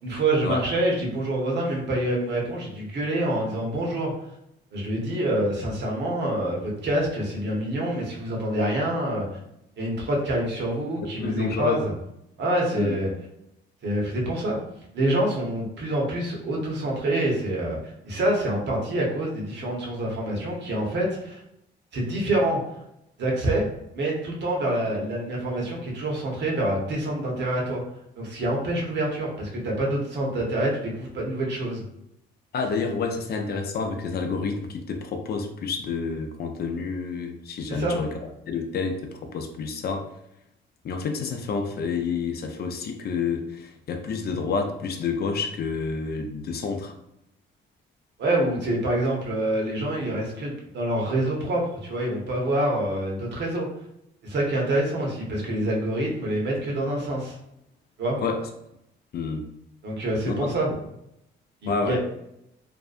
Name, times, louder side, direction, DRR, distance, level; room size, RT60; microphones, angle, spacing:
voice 1, 0.0-4.1 4.7-9.4 9.8-11.9 12.4-13.1 13.8-14.6 14.9-21.4 21.9-22.6 23.2-23.6 23.9-27.8 28.2-31.8 37.7-38.0 48.2-53.7 54.2-57.4 58.0-58.2 59.8-60.7 61.6-62.0, right 1 dB, 60° right, -2 dB, 0.9 m, -26 dB
voice 2, 11.2-11.8 12.7-13.0 32.5-38.1 38.5-40.1 40.8-46.9 58.2-58.4 59.1-59.4 60.2-60.8 61.7-62.0, left 5 dB, 55° left, 4 dB, 0.4 m, -29 dB
2.6 x 2.1 x 2.4 m, 0.80 s
cardioid pair, 90°, 20 cm